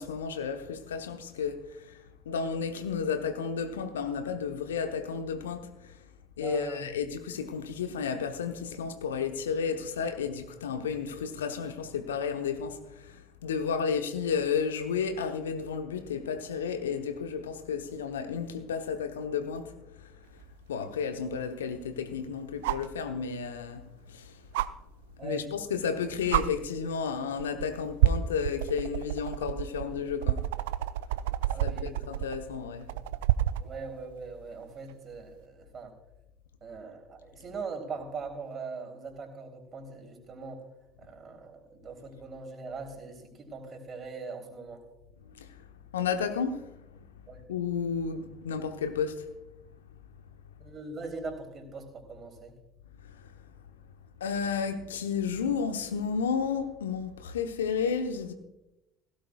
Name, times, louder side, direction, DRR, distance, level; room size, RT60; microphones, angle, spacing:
voice 1, 0.0-2.0 2.3-5.7 6.4-19.7 20.0-20.1 20.7-23.8 24.1-24.3 25.2-30.4 31.6-32.8 45.4-45.5 45.9-46.7 47.5-49.3 54.2-58.3, left 6 dB, 75° left, 1.0 m, -32 dB
voice 2, 6.4-6.9 25.2-25.5 31.5-32.0 33.6-35.9 36.6-40.6 41.0-44.8 47.3-47.4 50.6-52.5, right 4 dB, 40° right, 3.4 m, -41 dB
sound 1, 20.4-20.5 22.6-22.9 24.5-24.7 25.8-25.9 26.3-26.4 27.4-27.6 28.0-33.7 35.3-35.4, right 13 dB, 70° right, 0.4 m, -28 dB
18.0 x 16.5 x 2.4 m
figure-of-eight pair, 60°, 0 cm